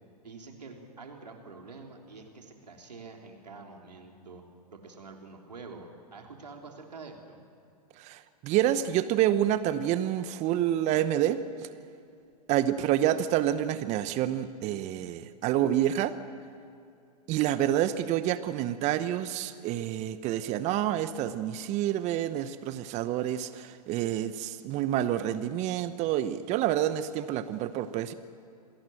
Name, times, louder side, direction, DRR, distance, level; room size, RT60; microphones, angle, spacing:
voice 1, 0.2-4.4 4.7-7.4, right 4 dB, 85° right, 2 dB, 3.5 m, -46 dB
voice 2, 8.0-11.4 12.5-16.2 17.3-28.1, right 12 dB, 35° right, 13 dB, 1.0 m, -28 dB
27.0 x 18.0 x 7.8 m, 2.5 s
hypercardioid pair, 105°, 20 cm